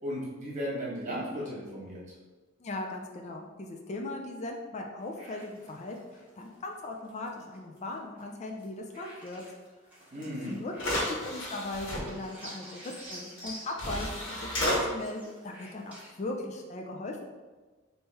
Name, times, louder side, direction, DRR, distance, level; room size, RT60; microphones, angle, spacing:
voice 1, 0.0-2.1 10.1-10.6, equal, 40° right, -5 dB, 1.3 m, -35 dB
voice 2, 2.6-9.4 10.2-10.7 11.0-17.3, left 2 dB, 35° left, 2 dB, 0.4 m, -39 dB
sound 1, 5.0-8.6 8.9-11.3 11.7-16.1, equal, 10° right, 1.5 m, -49 dB
sound 2, 10.2-10.3 10.7-12.0 13.4-13.5 13.8-14.8, left 1 dB, 65° left, 1.4 m, -31 dB
3.7 x 2.8 x 4.2 m, 1.3 s
head